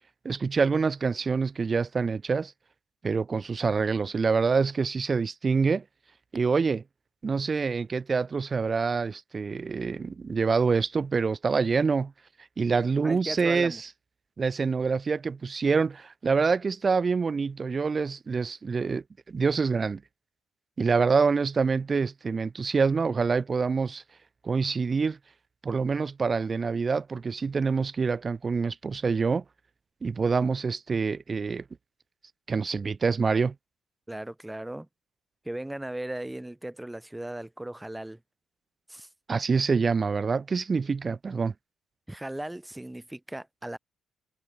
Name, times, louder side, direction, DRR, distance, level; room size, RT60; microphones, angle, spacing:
voice 1, 0.2-2.5 3.0-5.8 6.3-6.8 7.2-12.1 12.6-13.8 14.4-20.0 20.8-24.0 24.4-25.2 25.6-29.4 30.0-31.6 32.5-33.5 39.3-41.5, right 5 dB, 40° right, 1.0 m, -26 dB
voice 2, 13.0-13.8 34.1-34.9 35.4-38.2 38.9-39.1 42.1-43.8, right 1 dB, 10° right, 2.5 m, -37 dB
supercardioid pair, 65°, 0 cm